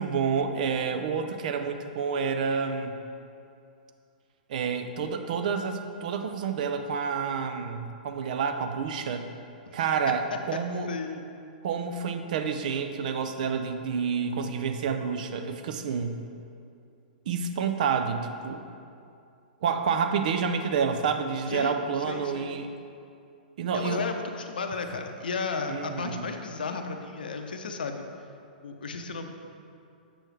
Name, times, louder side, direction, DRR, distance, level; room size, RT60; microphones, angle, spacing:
voice 1, 0.0-2.9 4.5-9.3 9.7-10.9 11.6-16.2 17.3-18.6 19.6-22.7 23.6-24.0 25.7-26.2, right 6 dB, 60° right, 7 dB, 0.6 m, -29 dB
voice 2, 10.9-11.2 21.5-21.7 22.1-22.5 23.7-28.0 28.6-29.3, left 4 dB, 75° left, 5 dB, 0.6 m, -34 dB
7.8 x 6.3 x 3.3 m, 2.5 s
figure-of-eight pair, 110°, 5 cm